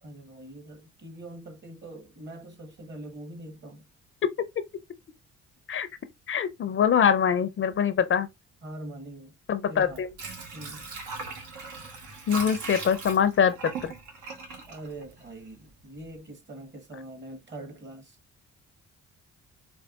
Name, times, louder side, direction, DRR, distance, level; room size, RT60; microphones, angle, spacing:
voice 1, 0.0-3.9 8.6-9.3 9.7-10.1 10.5-10.9 14.7-18.2, right 1 dB, 35° right, 1.1 m, -43 dB
voice 2, 6.3-8.3 9.5-10.1 12.3-13.5 13.8-13.9, left 7 dB, 45° left, 0.5 m, -23 dB
Water / Sink (filling or washing), 9.8-15.7 16.0-16.1, right 3 dB, 85° right, 1.1 m, -39 dB
4.4 x 2.3 x 2.3 m
cardioid pair, 90°, 30 cm